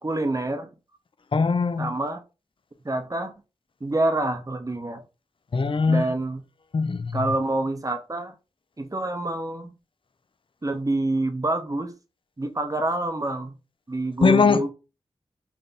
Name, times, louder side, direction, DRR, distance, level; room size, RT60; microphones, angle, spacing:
voice 1, 0.0-0.7 1.8-2.2 2.8-3.3 3.8-5.0 5.9-6.4 7.1-8.3 8.8-9.7 10.6-11.9 12.4-13.6 13.9-14.7, right 2 dB, 30° right, 0.8 m, -27 dB
voice 2, 1.3-1.9 5.5-6.1 6.7-7.2 14.2-14.6, left 4 dB, 50° left, 0.4 m, -21 dB
3.4 x 2.6 x 4.1 m
cardioid pair, 50°, 11 cm